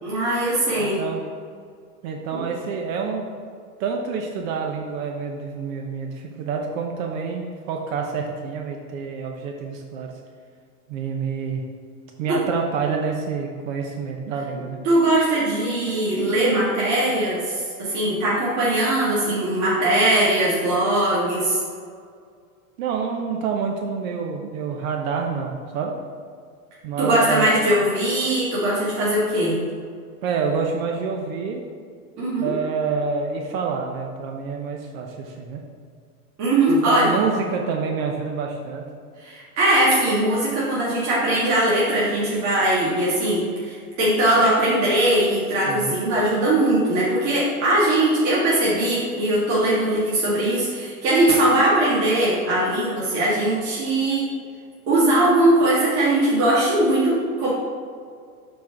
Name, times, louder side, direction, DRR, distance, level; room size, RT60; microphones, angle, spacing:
voice 1, 0.0-1.0 2.3-2.4 12.3-12.4 14.8-21.6 27.0-29.6 32.2-32.5 36.4-37.2 39.2-54.3 54.9-57.5, right 1 dB, 35° right, -8 dB, 1.9 m, -20 dB
voice 2, 0.8-1.2 2.0-3.3 3.8-10.1 10.9-11.6 12.2-14.8 22.8-26.0 26.8-27.5 30.2-31.6 32.4-35.6 36.7-38.8 45.7-46.0, right 5 dB, 60° right, 2 dB, 1.0 m, -27 dB
7.4 x 4.6 x 4.6 m, 2.1 s
supercardioid pair, 125°, 45 cm